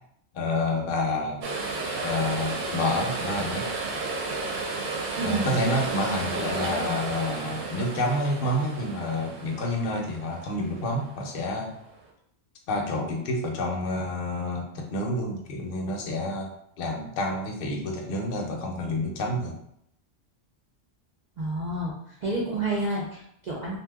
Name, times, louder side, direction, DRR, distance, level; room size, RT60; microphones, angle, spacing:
voice 1, 0.3-1.5 2.0-3.7 5.2-11.7 12.7-16.5 16.8-19.6, left 1 dB, 55° left, 1 dB, 0.7 m, -29 dB
sound 1, 1.4-11.7 12.0-12.1, right 3 dB, 90° right, 1.0 m, -33 dB
voice 2, 5.2-5.6 6.5-7.0 21.4-21.9 22.2-23.8, right 2 dB, 55° right, -4 dB, 0.5 m, -30 dB
2.7 x 2.2 x 3.4 m, 0.72 s
omnidirectional pair, 1.3 m